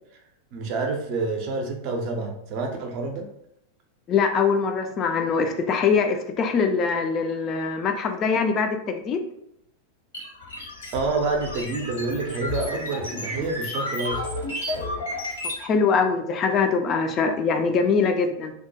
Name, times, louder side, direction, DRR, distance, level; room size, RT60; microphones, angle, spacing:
voice 1, 0.5-3.3 10.9-14.2, right 3 dB, 45° right, 3 dB, 0.5 m, -28 dB
voice 2, 4.1-9.2 14.8-15.0 15.6-18.5, left 5 dB, 30° left, 6 dB, 0.3 m, -23 dB
sound 1, 10.1-15.6, left 2 dB, 65° left, 0.8 m, -32 dB
2.3 x 2.1 x 2.7 m, 0.75 s
figure-of-eight pair, 90°, 0 cm